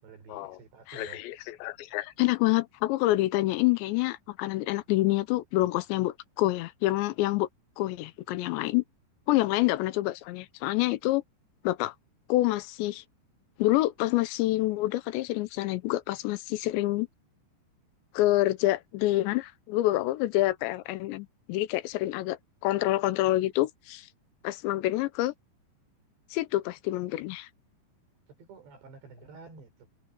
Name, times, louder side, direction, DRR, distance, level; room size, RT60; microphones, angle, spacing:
voice 1, 0.0-1.2 22.2-22.3 28.4-29.9, right 5 dB, 75° right, 7.5 m, -50 dB
voice 2, 0.9-7.5 7.8-8.8 9.3-11.2 11.6-11.9 12.3-13.0 13.6-17.1 18.1-22.4 22.6-24.1 24.4-25.3 26.3-27.5, left 17 dB, 85° left, 3.1 m, -27 dB
omnidirectional pair, 5.0 m